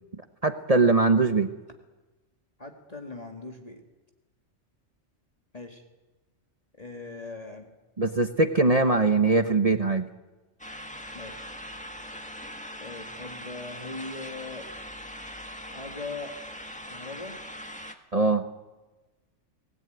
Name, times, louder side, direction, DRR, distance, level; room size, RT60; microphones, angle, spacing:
voice 1, 0.4-1.5 8.0-10.1 18.1-18.4, right 3 dB, 35° right, 8 dB, 1.0 m, -21 dB
voice 2, 2.6-3.8 5.5-5.8 6.8-7.7 11.1-11.5 12.8-14.7 15.7-16.3 16.9-17.4, left 3 dB, 30° left, 3 dB, 2.2 m, -40 dB
sound 1, 10.6-17.9, equal, 5° left, 1.6 m, -41 dB
25.0 x 18.5 x 9.4 m, 1.2 s
omnidirectional pair, 1.3 m